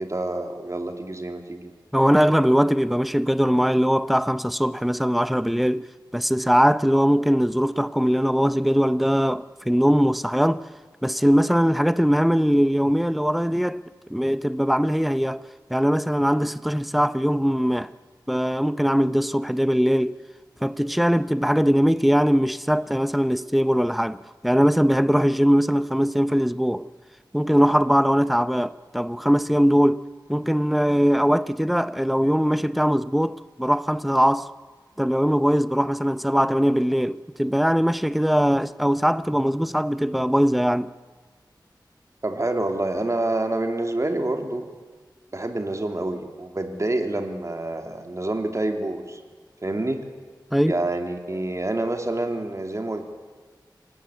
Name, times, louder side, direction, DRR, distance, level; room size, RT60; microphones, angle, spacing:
voice 1, 0.0-1.7 42.2-44.7 45.3-49.2 49.6-50.0 50.7-53.0, right 2 dB, 40° right, 2.9 m, -27 dB
voice 2, 1.9-5.9 6.1-10.7 11.0-13.8 14.1-15.4 15.7-17.9 18.3-20.2 20.6-26.9 27.3-34.5 35.0-40.9 50.5-50.8, equal, ahead, 0.7 m, -21 dB
26.5 x 18.5 x 8.4 m
wide cardioid pair, 65°, 8 cm